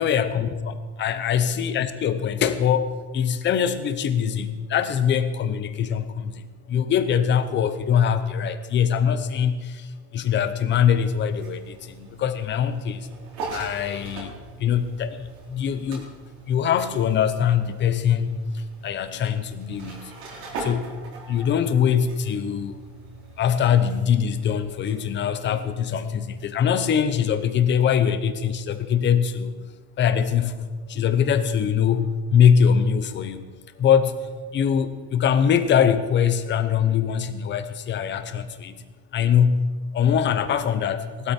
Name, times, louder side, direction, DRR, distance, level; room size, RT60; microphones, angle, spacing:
voice 1, 0.0-13.1 13.5-14.3 14.6-16.1 16.5-20.1 20.6-20.9 21.3-22.8 23.4-29.6 30.0-33.5 33.8-38.8 39.1-41.3, left 8 dB, 25° left, 11 dB, 0.8 m, -23 dB
sound 1, 10.8-26.8, right 3 dB, 55° right, 4.2 m, -41 dB
18.5 x 13.0 x 4.4 m, 1.4 s
cardioid pair, 175°, 42 cm